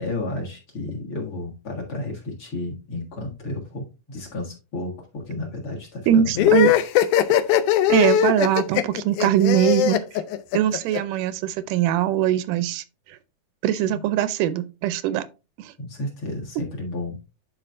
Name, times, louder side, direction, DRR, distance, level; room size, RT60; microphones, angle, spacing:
voice 1, 0.0-6.7 13.8-14.0 15.8-17.2, left 2 dB, 50° left, 2.1 m, -32 dB
voice 2, 6.1-6.7 7.9-10.0 10.5-12.8 13.6-15.3 15.6-15.7, right 11 dB, 85° right, 2.2 m, -21 dB
sound 1, 6.4-11.0, left 11 dB, 80° left, 2.0 m, -19 dB
11.0 x 4.3 x 2.5 m
omnidirectional pair, 3.6 m